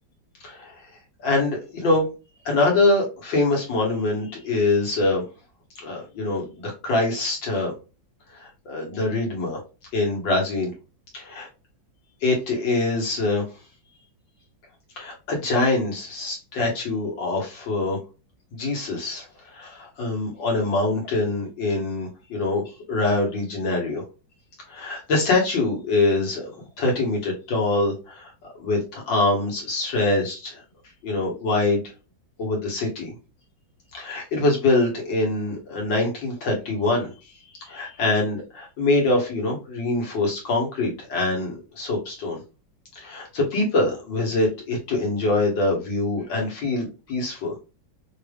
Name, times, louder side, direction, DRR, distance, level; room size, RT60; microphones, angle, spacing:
voice 1, 0.4-0.9 1.2-2.1 2.5-5.2 5.8-7.7 8.3-9.6 9.9-10.7 11.1-11.5 12.2-13.5 15.0-18.0 18.5-24.0 24.7-26.5 26.8-28.3 28.6-30.6 31.0-31.9 32.4-33.2 33.9-37.1 37.6-42.4 42.9-47.6, left 2 dB, 70° left, -1 dB, 2.2 m, -24 dB
5.8 x 2.4 x 3.4 m, 0.31 s
omnidirectional pair, 2.1 m